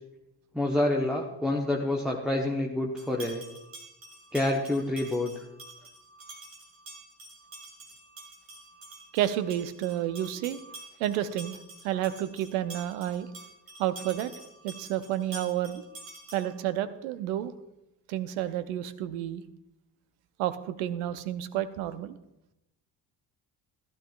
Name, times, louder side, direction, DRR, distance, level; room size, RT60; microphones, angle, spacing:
voice 1, 0.5-3.4 4.3-5.3, left 1 dB, ahead, -1 dB, 1.0 m, -27 dB
sound 1, 3.0-16.6, right 2 dB, 80° right, 2.1 m, -47 dB
voice 2, 9.1-10.6 11.0-11.6 11.8-13.3 13.8-14.3 14.6-15.8 16.3-17.5 18.1-19.4 20.4-22.2, right 12 dB, 60° right, 13 dB, 0.8 m, -30 dB
15.5 x 12.0 x 2.4 m, 0.90 s
figure-of-eight pair, 50°, 49 cm